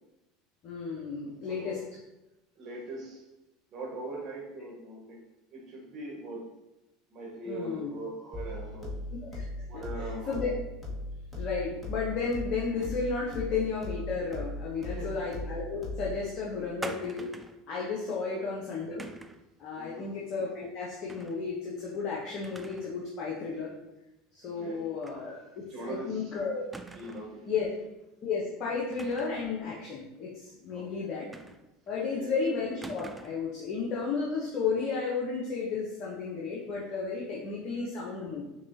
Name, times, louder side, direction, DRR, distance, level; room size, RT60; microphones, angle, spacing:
voice 1, 0.6-1.8 7.4-7.9 9.3-9.4 10.3-10.5 11.3-17.3 17.7-19.0 19.6-23.7 24.3-26.6 27.5-27.7 28.2-31.3 31.9-38.4, left 5 dB, 50° left, -3 dB, 0.8 m, -33 dB
voice 2, 1.5-1.8 2.6-3.2 3.7-5.2 5.5-6.5 7.1-9.0 9.7-10.4 14.8-15.1 18.3-18.5 19.7-20.1 24.4-24.8 25.7-26.3 26.9-27.5 30.7-31.0 32.1-32.3, right 2 dB, 45° right, -2 dB, 1.2 m, -41 dB
sound 1, 8.3-16.3, left 1 dB, 20° left, 1.3 m, -38 dB
sound 2, 16.8-17.6 19.0-19.5 21.1-21.4 21.8-21.9 22.4-23.0 23.3-23.4 25.0-25.2 25.6-25.7 26.7-27.3 28.9-29.5 31.3-31.9 32.8-33.5, right 2 dB, 10° right, 0.3 m, -44 dB
5.9 x 2.3 x 2.7 m, 0.97 s
hypercardioid pair, 80°, 0 cm